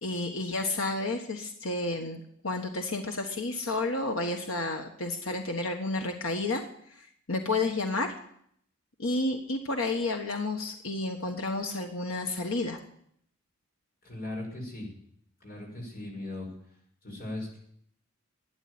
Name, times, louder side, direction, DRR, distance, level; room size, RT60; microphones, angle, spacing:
voice 1, 0.0-8.1 9.0-12.8, left 2 dB, 70° left, 3 dB, 1.4 m, -31 dB
voice 2, 14.0-14.9 15.4-16.5 17.0-17.6, left 1 dB, 45° left, 0 dB, 5.8 m, -38 dB
13.0 x 9.0 x 9.8 m, 0.68 s
head